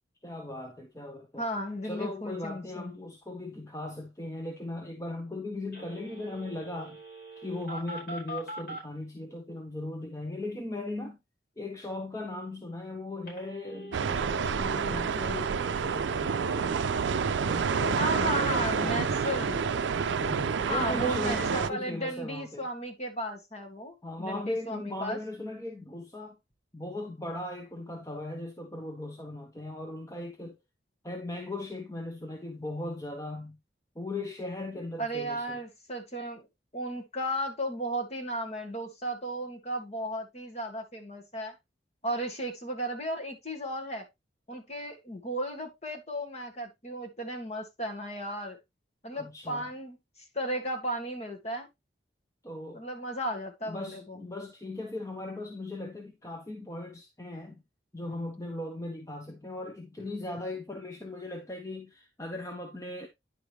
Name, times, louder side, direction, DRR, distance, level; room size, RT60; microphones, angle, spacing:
voice 1, 0.2-1.5 1.8-7.0 7.4-11.2 11.6-16.9 17.4-19.5 20.2-22.7 24.0-26.4 26.7-30.6 31.0-33.6 33.9-35.6 49.1-49.7 52.4-52.9 53.6-57.6 57.9-63.1, left 2 dB, 20° left, 1.0 m, -38 dB
voice 2, 1.4-3.0 18.0-19.7 20.7-25.2 35.0-36.4 36.7-41.6 42.0-44.1 44.5-48.6 49.0-50.0 50.3-51.7 52.7-54.2, equal, 35° left, 2.0 m, -34 dB
Telephone, 5.7-8.8 13.3-21.4, equal, 60° left, 5.2 m, -42 dB
sound 1, 13.9-21.7, right 6 dB, 80° right, 0.4 m, -29 dB
10.5 x 4.9 x 3.2 m
head